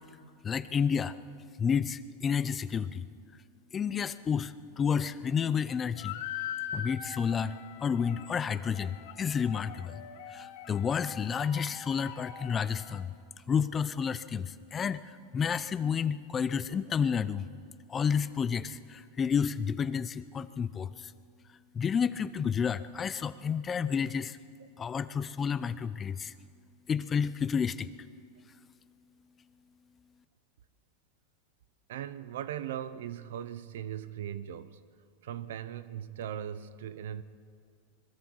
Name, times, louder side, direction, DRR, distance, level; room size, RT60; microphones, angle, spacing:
voice 1, 0.4-1.2 1.6-3.1 3.7-6.2 6.7-10.0 10.3-13.1 13.5-17.5 17.9-21.1 21.7-24.4 24.8-26.3 26.9-27.9, left 7 dB, 20° left, 0.6 m, -30 dB
sound 1, 6.0-13.0, left 9 dB, 65° left, 2.9 m, -42 dB
voice 2, 31.9-34.8 35.2-37.2, right 10 dB, 80° right, 0.9 m, -39 dB
27.5 x 21.5 x 4.8 m
supercardioid pair, 145°, 0 cm